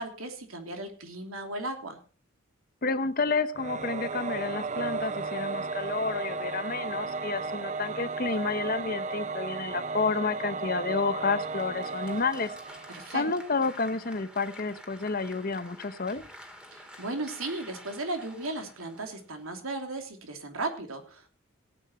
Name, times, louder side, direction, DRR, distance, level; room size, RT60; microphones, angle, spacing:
voice 1, 0.0-2.0 12.9-13.2 16.7-21.3, right 2 dB, 85° right, 5 dB, 3.1 m, -36 dB
voice 2, 2.8-12.5 13.1-16.2, left 4 dB, 45° left, 12 dB, 0.9 m, -30 dB
Singing / Musical instrument, 3.5-13.6, right 4 dB, 35° right, 0.6 m, -34 dB
Applause, 11.5-19.6, equal, 5° right, 2.1 m, -49 dB
17.0 x 9.1 x 4.3 m, 0.37 s
head